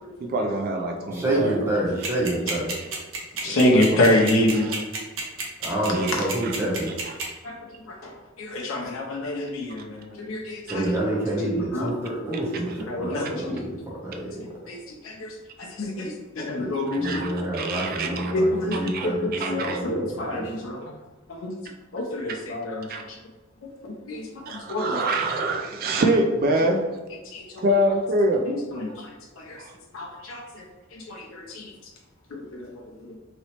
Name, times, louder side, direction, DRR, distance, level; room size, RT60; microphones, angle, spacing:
voice 1, 0.2-1.7 2.0-2.1 2.8-2.9 3.5-4.2 4.5-4.7 5.9-6.1 6.4-6.5 6.9-7.1 12.7-12.8 16.9-18.3 18.7-19.1 19.3-19.8 22.9-23.0 24.5-26.9 27.6-28.5 29.6-29.7, right 1 dB, 45° right, 3 dB, 0.3 m, -26 dB
voice 2, 1.1-2.7 5.6-6.9 10.7-13.8 14.0-14.3 16.6-20.4, right 1 dB, 15° right, -6 dB, 0.7 m, -28 dB
sound 1, 2.0-7.2, right 4 dB, 70° right, 0.8 m, -29 dB
voice 3, 3.4-4.7 7.4-7.5 7.9-8.1 8.4-10.9 11.4-11.9 12.9-13.6 14.4-14.8 15.0-15.3 15.6-17.3 18.3-20.9 21.4-21.5 21.9-22.9 23.8-24.9 27.3-27.6 28.5-29.1 29.4-29.6 29.9-30.6 30.9-31.7 32.3-32.7 33.0-33.1, left 1 dB, 75° left, -1 dB, 0.5 m, -27 dB
3.0 x 3.0 x 2.8 m, 1.2 s
head